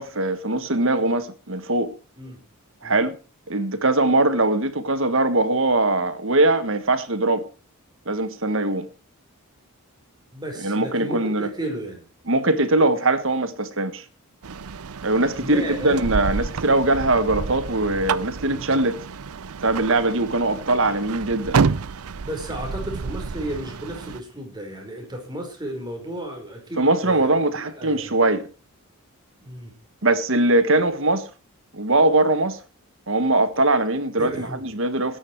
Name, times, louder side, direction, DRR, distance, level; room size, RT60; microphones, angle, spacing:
voice 1, 0.0-1.9 2.8-3.1 3.5-7.4 8.1-8.9 10.6-11.5 12.3-14.0 15.0-19.0 19.6-21.6 26.8-28.5 30.0-31.3 31.7-32.6 33.1-35.2, right 2 dB, 60° right, 1.5 m, -21 dB
voice 2, 10.3-12.0 15.4-16.0 22.2-27.3 27.8-28.4 29.4-29.7 34.2-34.7, right 1 dB, 20° right, 5.1 m, -33 dB
sound 1, 14.4-24.2, right 5 dB, 80° right, 0.6 m, -29 dB
18.5 x 10.0 x 4.7 m
head